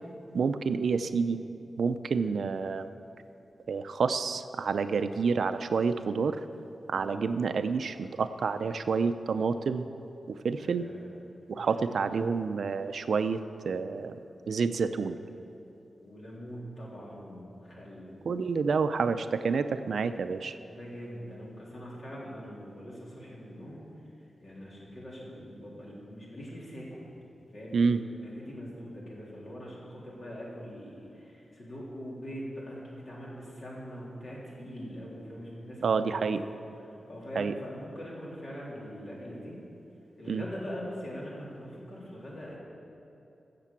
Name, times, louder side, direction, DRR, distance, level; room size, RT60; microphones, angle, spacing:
voice 1, 0.3-1.4 1.8-2.9 3.7-6.4 6.9-9.9 10.3-10.9 11.5-14.2 14.5-15.2 18.3-20.6 27.7-28.0 35.8-36.4 37.4-37.5 40.3-40.4, right 5 dB, 70° right, 10 dB, 0.5 m, -28 dB
voice 2, 6.9-7.2 10.6-11.0 11.5-11.9 16.0-18.3 20.6-23.8 24.4-27.1 27.5-39.6 40.2-42.6, equal, 45° left, -5 dB, 3.4 m, -43 dB
15.5 x 6.7 x 7.3 m, 2.9 s
wide cardioid pair, 180°, 0 cm